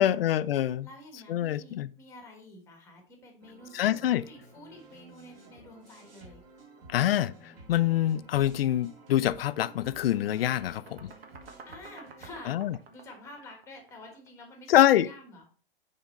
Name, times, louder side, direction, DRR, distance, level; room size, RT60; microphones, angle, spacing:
voice 1, 0.0-0.9 1.3-1.9 3.7-4.2 6.9-11.1 12.5-12.7 14.7-15.1, left 12 dB, 75° left, 0.5 m, -25 dB
voice 2, 0.8-4.0 4.3-6.4 11.7-12.5 12.9-15.4, left 1 dB, 10° left, 1.3 m, -49 dB
sound 1, 3.4-12.4, right 2 dB, 25° right, 1.8 m, -53 dB
sound 2, 9.0-9.2 9.6-14.5, right 4 dB, 85° right, 1.4 m, -52 dB
7.7 x 3.6 x 4.1 m
hypercardioid pair, 160°, 29 cm